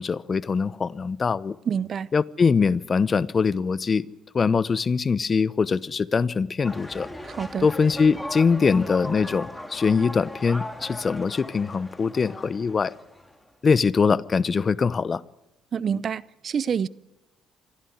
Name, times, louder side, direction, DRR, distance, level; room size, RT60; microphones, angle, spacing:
voice 1, 0.0-1.6 2.1-4.1 4.3-7.1 7.6-12.9 13.6-15.2, left 5 dB, 40° left, 0.8 m, -23 dB
voice 2, 1.7-2.1 7.2-7.7 15.7-16.9, right 7 dB, 50° right, 0.7 m, -27 dB
sound 1, 6.6-13.5, left 1 dB, 5° left, 2.9 m, -38 dB
23.5 x 15.0 x 9.6 m
supercardioid pair, 70°, 0 cm